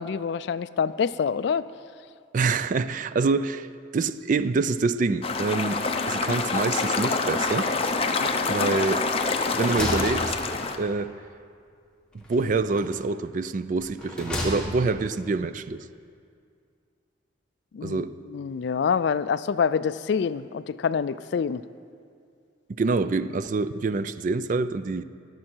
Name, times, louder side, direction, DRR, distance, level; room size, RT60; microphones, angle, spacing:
voice 1, 0.0-1.7 8.2-8.8 17.7-21.6, left 6 dB, 60° left, 0.3 m, -27 dB
voice 2, 2.3-3.7 3.9-7.7 8.4-9.1 9.5-10.4 10.8-11.1 12.1-15.8 17.8-18.1 22.8-25.0, right 3 dB, 40° right, 0.3 m, -26 dB
sound 1, 5.2-10.8, left 3 dB, 30° left, 0.6 m, -26 dB
sound 2, 9.3-10.9 12.2-13.1 13.8-15.0, left 1 dB, 5° left, 1.7 m, -34 dB
22.5 x 7.5 x 4.5 m
head